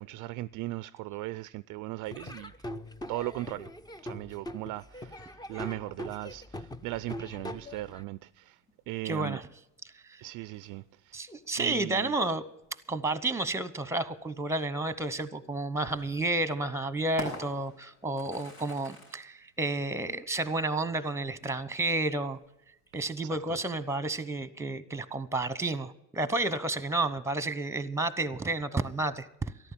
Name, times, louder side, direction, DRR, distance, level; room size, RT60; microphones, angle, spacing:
voice 1, 0.0-2.5 3.1-3.7 4.0-8.6 8.9-9.4 10.2-11.2 11.6-12.1 23.3-23.6, right 18 dB, 50° right, 0.4 m, -38 dB
Laughter / Drum, 2.1-8.0, left 1 dB, 10° left, 0.6 m, -42 dB
sound 1, 8.0-23.3, left 1 dB, 85° left, 6.7 m, -49 dB
voice 2, 9.0-9.4 9.9-10.2 11.1-12.4 12.9-22.4 22.9-29.3, right 2 dB, 5° right, 1.0 m, -31 dB
13.5 x 11.5 x 7.3 m
supercardioid pair, 90°, 43 cm